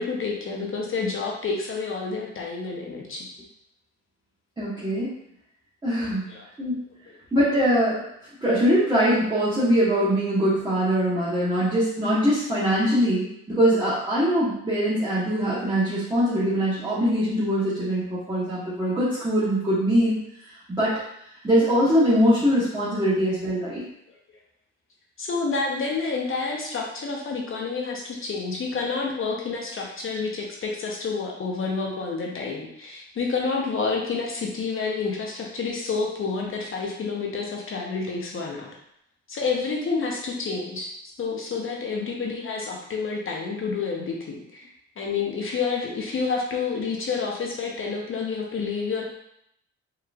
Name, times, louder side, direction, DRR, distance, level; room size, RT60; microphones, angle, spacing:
voice 1, 0.0-3.3 6.3-6.5 25.2-38.7 39.3-40.9 41.2-49.0, left 4 dB, 45° left, -1 dB, 0.8 m, -29 dB
voice 2, 4.6-5.2 5.8-6.3 6.6-6.7 7.3-8.0 8.4-20.1 20.5-20.9 21.4-23.8, equal, 15° right, -11 dB, 1.3 m, -22 dB
4.7 x 3.1 x 2.4 m, 0.75 s
cardioid pair, 90°, 30 cm